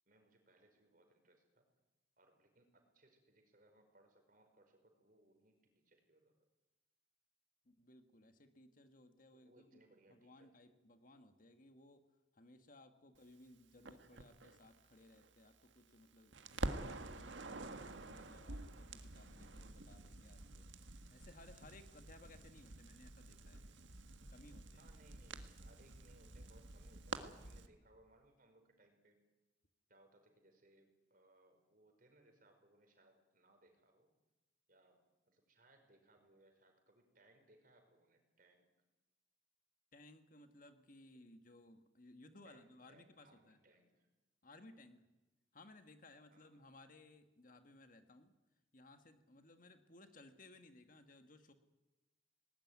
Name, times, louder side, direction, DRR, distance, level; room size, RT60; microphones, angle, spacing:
voice 1, 0.1-1.6 2.2-6.3 9.3-10.8 13.1-13.2 24.8-29.2 29.9-34.1 34.7-35.0 35.3-38.7 42.4-44.1 44.7-44.9 46.3-46.7, right 1 dB, 45° right, 4 dB, 5.3 m, -69 dB
voice 2, 7.7-9.8 10.1-12.0 12.3-16.4 16.8-20.7 21.1-23.7 24.3-24.9 39.9-43.6 44.4-45.1 45.5-48.3 48.7-51.5, left 2 dB, 45° left, 7 dB, 1.6 m, -61 dB
Crackle, 13.9-16.0 16.3-27.7, right 2 dB, 70° right, 1.7 m, -48 dB
19.5 x 19.5 x 9.6 m, 1.1 s
head